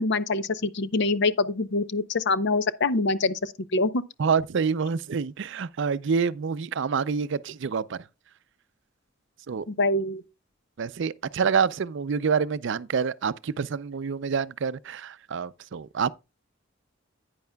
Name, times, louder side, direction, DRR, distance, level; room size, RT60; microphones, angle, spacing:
voice 1, 0.0-4.0 9.7-10.2, left 3 dB, 60° left, 0.6 m, -25 dB
voice 2, 4.2-8.0 9.5-9.7 10.8-16.1, right 6 dB, 65° right, 0.4 m, -27 dB
10.5 x 9.4 x 2.2 m
head